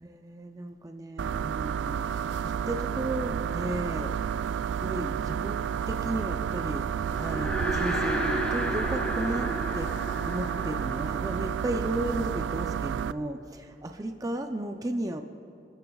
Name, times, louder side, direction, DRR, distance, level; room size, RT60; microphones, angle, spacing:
voice 1, 0.0-4.2 4.8-15.2, right 1 dB, 20° right, 5 dB, 0.5 m, -34 dB
sound 1, 1.2-13.1, right 8 dB, 85° right, 0.3 m, -31 dB
sound 2, 7.0-12.4, right 1 dB, 5° left, 2.6 m, -33 dB
29.0 x 14.0 x 2.3 m, 2.5 s
head